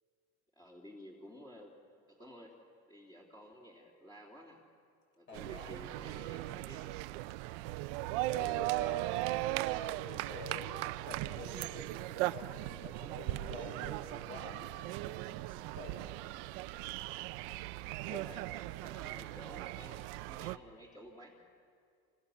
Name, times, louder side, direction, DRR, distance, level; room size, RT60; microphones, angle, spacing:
voice 1, 0.5-1.7 2.1-2.6 2.9-4.6 5.1-6.9 17.3-17.7 18.0-18.5 18.8-21.4, equal, 15° left, -2 dB, 3.2 m, -53 dB
voice 2, 5.3-5.7 8.3-9.2 9.7-16.1 18.1-18.2, left 3 dB, 40° left, 2 dB, 6.4 m, -49 dB
sound 1, 5.3-20.6, right 17 dB, 75° right, 0.8 m, -38 dB
28.0 x 27.5 x 7.2 m, 2.3 s
cardioid pair, 145°, 29 cm